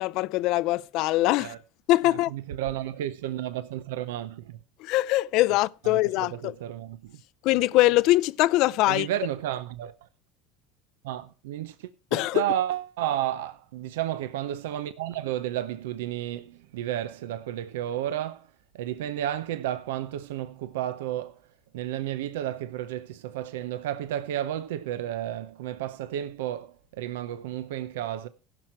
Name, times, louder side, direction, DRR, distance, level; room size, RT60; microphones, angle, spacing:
voice 1, 0.0-1.5 1.9-2.3 4.8-6.5 7.4-9.1 12.1-12.4, left 17 dB, 65° left, 0.4 m, -23 dB
voice 2, 2.1-4.6 5.8-7.2 8.9-10.1 11.0-18.5 18.7-21.4 21.7-28.3, right 12 dB, 85° right, 0.6 m, -32 dB
16.0 x 6.1 x 4.5 m
supercardioid pair, 95°, 0 cm